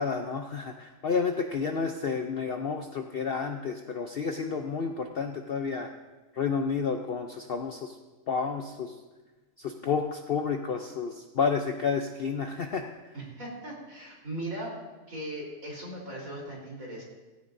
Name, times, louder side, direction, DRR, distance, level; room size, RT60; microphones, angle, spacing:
voice 1, 0.0-5.9 6.3-7.9 8.3-8.9 9.6-12.8, left 5 dB, 50° left, 4 dB, 0.8 m, -30 dB
voice 2, 13.1-14.7 15.1-17.0, right 1 dB, 75° right, -3 dB, 4.4 m, -38 dB
17.0 x 15.5 x 2.7 m, 1.2 s
omnidirectional pair, 1.4 m